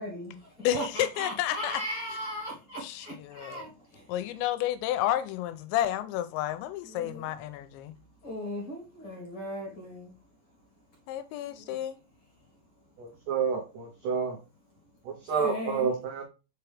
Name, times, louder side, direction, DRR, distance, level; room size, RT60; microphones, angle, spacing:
voice 1, 0.0-4.1 6.8-7.4 8.2-10.2 11.5-11.8 12.4-13.0 14.0-14.1 15.2-16.0, equal, 55° left, 1.6 m, -38 dB
voice 2, 0.6-1.8 2.8-3.6 4.1-7.9 11.1-12.0, left 13 dB, 90° left, 2.9 m, -31 dB
voice 3, 13.0-14.4 15.1-16.2, right 5 dB, 80° right, 1.8 m, -29 dB
5.8 x 5.2 x 3.4 m
omnidirectional pair, 5.2 m